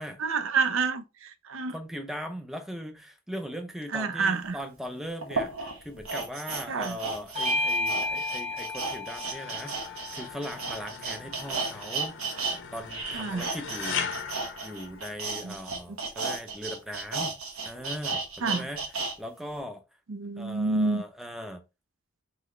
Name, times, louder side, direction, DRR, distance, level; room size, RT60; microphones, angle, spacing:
voice 1, 0.2-1.8 3.9-4.6 6.7-7.0 13.1-13.5 15.4-15.5 18.4-18.7 20.1-21.0, right 4 dB, 65° right, 0.5 m, -28 dB
voice 2, 1.7-12.2 12.5-17.3 17.6-19.8 20.4-21.6, equal, ahead, 0.5 m, -39 dB
sound 1, 4.4-4.5 5.2-12.6 12.8-19.1 19.5-19.6, right 4 dB, 85° right, 1.3 m, -34 dB
Bell / Doorbell, 7.3-12.2, left 2 dB, 30° right, 1.1 m, -33 dB
sound 2, 9.2-15.5, left 6 dB, 60° left, 0.7 m, -39 dB
3.9 x 3.1 x 3.6 m
head